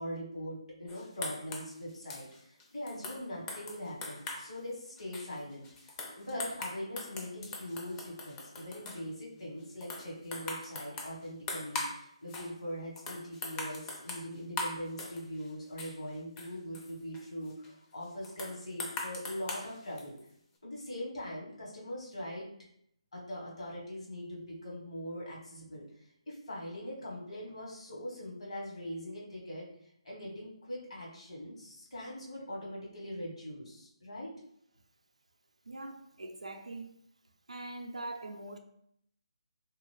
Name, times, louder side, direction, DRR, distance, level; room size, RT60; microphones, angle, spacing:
voice 1, 0.0-20.2 20.6-22.5 23.1-25.9 26.3-29.7 30.0-34.3, equal, 70° left, 1.2 m, -41 dB
sound 1, 0.9-4.5 5.0-9.1 9.6-12.0 12.3-12.5 13.0-15.5 15.8-17.7 18.2-20.3, left 2 dB, 15° left, 0.4 m, -41 dB
voice 2, 35.7-36.9 37.5-38.6, right 2 dB, 85° right, 0.4 m, -42 dB
2.8 x 2.4 x 3.1 m
figure-of-eight pair, 150°, 3 cm